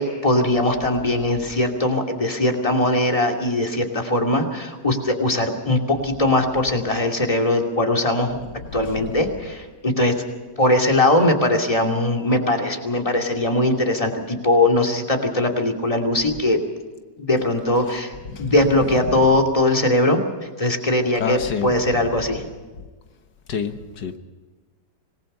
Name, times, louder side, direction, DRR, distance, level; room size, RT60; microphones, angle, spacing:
voice 1, 0.0-8.4 8.7-10.2 10.6-16.6 17.2-18.1 18.4-20.2 20.6-22.4, left 1 dB, 20° left, 2.7 m, -20 dB
voice 2, 8.7-9.2 17.9-18.0 18.3-18.6 18.9-19.3 21.2-22.1 22.8-22.9 23.5-24.2, left 6 dB, 85° left, 1.9 m, -29 dB
26.5 x 20.0 x 5.5 m
omnidirectional pair, 1.8 m